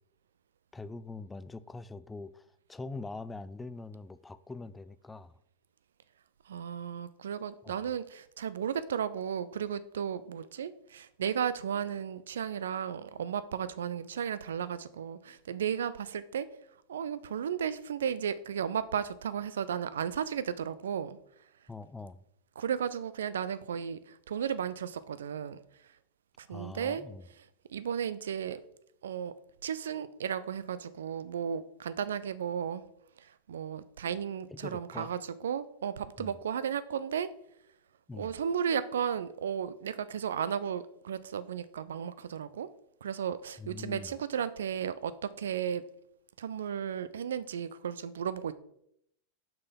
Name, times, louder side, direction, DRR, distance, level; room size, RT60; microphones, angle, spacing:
voice 1, 0.7-5.4 7.6-7.7 21.7-22.2 26.5-27.2 34.5-35.1 36.2-36.4 38.1-38.4 43.6-44.1, left 3 dB, 10° left, 0.3 m, -43 dB
voice 2, 6.5-16.5 16.9-21.2 22.6-25.6 26.4-27.0 27.7-28.6 29.0-29.3 29.6-32.8 33.2-37.3 38.1-42.7 43.0-45.8 46.4-48.5, right 8 dB, 65° right, 0.4 m, -34 dB
6.4 x 6.0 x 3.7 m
figure-of-eight pair, 90°, 0 cm